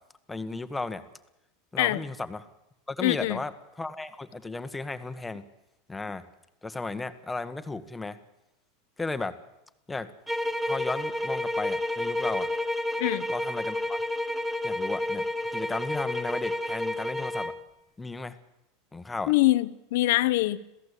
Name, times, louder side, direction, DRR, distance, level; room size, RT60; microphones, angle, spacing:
voice 1, 0.3-1.0 1.7-2.4 2.9-5.4 5.9-6.2 6.6-8.2 9.0-9.4 9.9-10.1 10.6-12.5 13.3-14.0 14.6-15.2 15.5-17.5 18.0-18.4 18.9-19.3, left 3 dB, 10° left, 10 dB, 1.6 m, -34 dB
voice 2, 3.0-3.4 13.0-13.3 19.3-20.6, left 17 dB, 75° left, 14 dB, 1.1 m, -24 dB
sound 1, 10.3-17.6, left 1 dB, 5° right, 1.6 m, -30 dB
27.0 x 16.5 x 8.5 m, 0.92 s
supercardioid pair, 130°, 0 cm